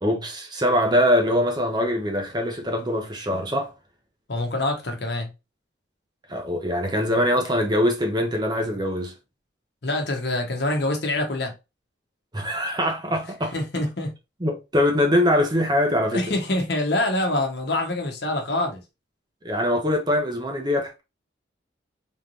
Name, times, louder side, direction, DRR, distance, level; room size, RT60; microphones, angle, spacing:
voice 1, 0.0-3.7 6.3-9.1 12.3-13.5 14.4-16.3 19.4-21.0, left 1 dB, 20° right, 0.7 m, -23 dB
voice 2, 4.3-5.3 9.8-11.5 13.5-14.1 16.1-18.8, left 1 dB, 55° left, 1.1 m, -25 dB
3.6 x 3.2 x 2.6 m
head